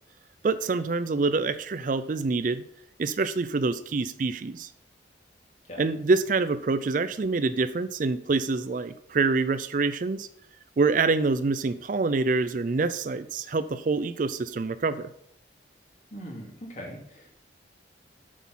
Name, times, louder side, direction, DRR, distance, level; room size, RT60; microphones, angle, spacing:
voice 1, 0.4-2.6 3.0-4.7 5.8-10.3 10.8-15.1, right 3 dB, 45° right, 13 dB, 0.4 m, -26 dB
voice 2, 16.1-17.3, equal, 40° left, -1 dB, 2.6 m, -41 dB
8.2 x 6.2 x 5.6 m, 0.72 s
head